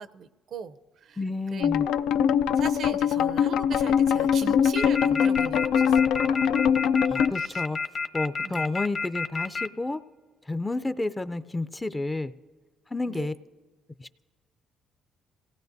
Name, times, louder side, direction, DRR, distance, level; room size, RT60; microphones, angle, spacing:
voice 1, 0.0-1.2 1.5-2.1 2.6-6.5 7.3-7.6 8.4-8.6 13.1-13.3, right 6 dB, 60° right, 14 dB, 0.6 m, -40 dB
voice 2, 1.2-1.9 7.1-7.8 8.1-10.0 10.5-12.3 12.9-13.3 14.0-14.2, left 2 dB, 15° left, 12 dB, 0.5 m, -30 dB
sound 1, 1.6-7.3, left 8 dB, 85° left, 0.4 m, -22 dB
sound 2, 4.8-9.7, left 5 dB, 40° left, 0.9 m, -29 dB
27.0 x 17.5 x 2.7 m, 1.6 s
cardioid pair, 100°, 0 cm